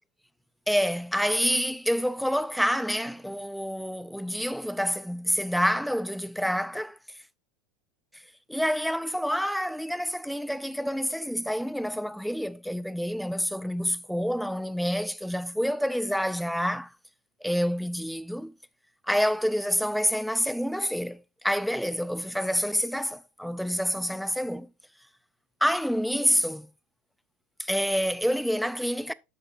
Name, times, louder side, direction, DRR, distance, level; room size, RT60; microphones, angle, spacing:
voice 1, 0.7-7.0 8.5-16.9 17.4-18.5 19.1-24.7 25.6-26.7 27.6-29.1, equal, ahead, 0.4 m, -28 dB
9.9 x 6.6 x 2.5 m
supercardioid pair, 125°, 0 cm